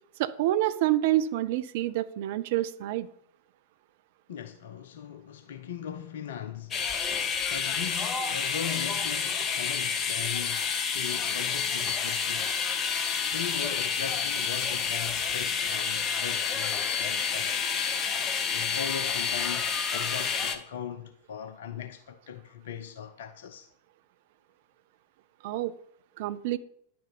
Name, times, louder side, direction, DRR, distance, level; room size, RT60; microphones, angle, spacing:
voice 1, 0.2-3.1 25.4-25.7 26.2-26.6, right 14 dB, 50° right, 0.5 m, -27 dB
voice 2, 4.3-6.9 7.4-12.6 13.2-17.6 18.5-23.7, left 8 dB, 60° left, 0.6 m, -39 dB
sound 1, 6.7-20.6, left 6 dB, 25° left, 0.9 m, -29 dB
10.0 x 6.8 x 4.0 m
figure-of-eight pair, 90°, 0 cm